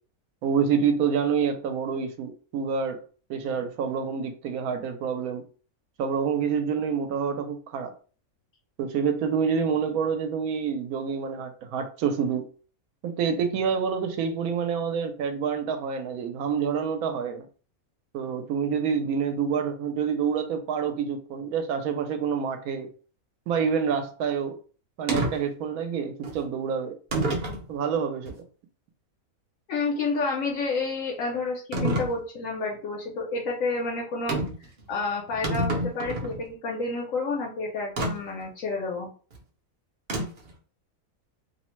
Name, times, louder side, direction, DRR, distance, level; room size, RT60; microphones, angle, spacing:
voice 1, 0.4-3.0 3.3-5.4 6.0-7.9 8.8-12.5 13.0-17.5 18.1-22.9 23.5-24.6 25.0-27.0 27.7-28.3, right 6 dB, 80° right, 1.0 m, -27 dB
sound 1, 25.1-25.3 26.2-26.4 27.1-27.6 28.3-28.4 31.7-32.1 34.3-34.6 35.0-35.1 35.3-36.4 38.0-38.1 40.1-40.5, right 1 dB, 50° right, 0.6 m, -27 dB
voice 2, 29.7-34.4 34.9-39.1, left 3 dB, 70° left, 1.0 m, -29 dB
2.7 x 2.1 x 3.0 m
omnidirectional pair, 1.5 m